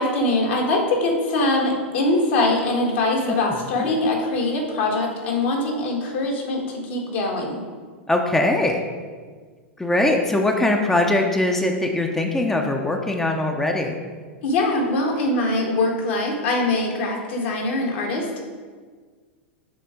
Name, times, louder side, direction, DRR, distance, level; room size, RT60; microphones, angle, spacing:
voice 1, 0.0-7.6 14.4-18.5, left 2 dB, 65° left, 0 dB, 1.6 m, -23 dB
voice 2, 8.1-8.8 9.8-13.9, left 2 dB, 5° left, 2 dB, 0.6 m, -21 dB
6.9 x 3.6 x 4.9 m, 1.5 s
hypercardioid pair, 100°, 6 cm